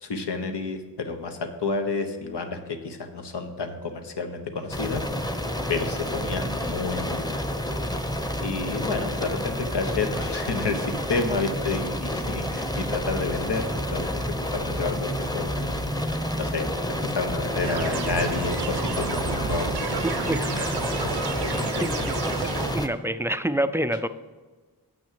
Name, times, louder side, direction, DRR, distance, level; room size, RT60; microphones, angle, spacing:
voice 1, 0.0-5.0 5.7-7.4 8.4-20.1 20.5-21.1 21.4-21.9 22.4-22.5, left 4 dB, 80° left, 6 dB, 1.0 m, -30 dB
sound 1, 4.7-22.9, equal, 10° left, 0.8 m, -29 dB
sound 2, 17.6-22.7, right 6 dB, 70° right, 0.7 m, -32 dB
voice 2, 21.8-22.2 22.4-24.1, right 1 dB, 5° right, 12 dB, 0.4 m, -27 dB
7.7 x 6.1 x 7.4 m, 1.4 s
cardioid pair, 45°, 41 cm